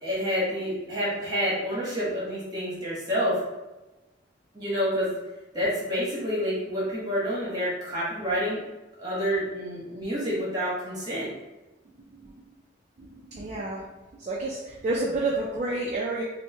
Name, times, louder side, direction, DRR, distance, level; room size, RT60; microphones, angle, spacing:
voice 1, 0.0-3.4 4.5-5.2 5.5-8.6 9.0-11.3, equal, 20° right, -7 dB, 1.0 m, -28 dB
voice 2, 13.0-13.8 14.1-16.2, right 2 dB, 35° right, -3 dB, 0.3 m, -30 dB
2.9 x 2.0 x 3.3 m, 1.1 s
head